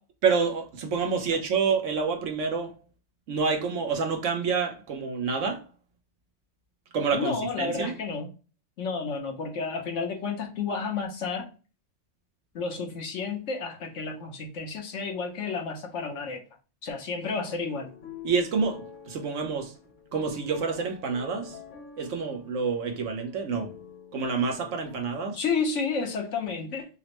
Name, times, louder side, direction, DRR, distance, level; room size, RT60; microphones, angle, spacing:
voice 1, 0.2-2.7 3.3-5.6 6.9-7.9 18.2-19.7 20.1-21.6 22.0-23.7 24.1-25.4, right 5 dB, 85° right, 1.2 m, -28 dB
voice 2, 7.1-8.3 8.8-11.5 12.5-16.4 16.8-17.9 25.3-26.9, left 4 dB, 90° left, 1.3 m, -31 dB
sound 1, 17.4-25.0, left 7 dB, 50° left, 0.8 m, -48 dB
5.4 x 2.1 x 3.0 m
omnidirectional pair, 1.2 m